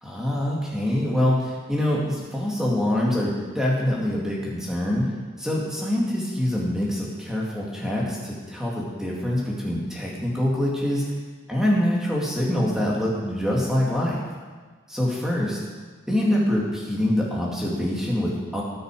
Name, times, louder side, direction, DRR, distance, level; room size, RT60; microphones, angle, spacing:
voice 1, 0.0-5.1 5.4-11.0 11.5-14.2 14.9-15.6 16.1-18.6, left 1 dB, 5° right, -4 dB, 2.4 m, -25 dB
18.5 x 6.7 x 5.0 m, 1.4 s
head